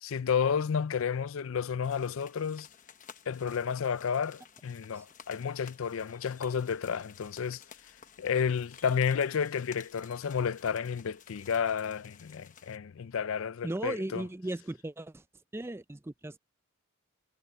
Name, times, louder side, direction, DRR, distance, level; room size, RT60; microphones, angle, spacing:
voice 1, 0.0-2.7 3.3-7.6 8.2-14.3, left 7 dB, 65° left, 0.4 m, -31 dB
sound 1, 1.8-12.8, left 7 dB, 35° left, 1.0 m, -54 dB
voice 2, 13.6-15.2 15.5-16.4, right 1 dB, 10° right, 0.4 m, -36 dB
head